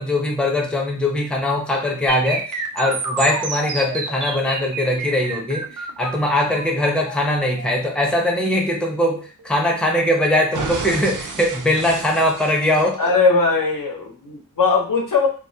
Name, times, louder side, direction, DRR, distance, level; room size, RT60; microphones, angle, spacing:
voice 1, 0.0-13.0, left 1 dB, 5° left, 0 dB, 0.5 m, -21 dB
sound 1, 2.1-10.0 10.5-13.1, right 4 dB, 70° right, 0.5 m, -30 dB
voice 2, 13.0-15.3, left 4 dB, 80° left, 0 dB, 0.7 m, -19 dB
2.2 x 2.1 x 2.7 m, 0.36 s
wide cardioid pair, 65°, 32 cm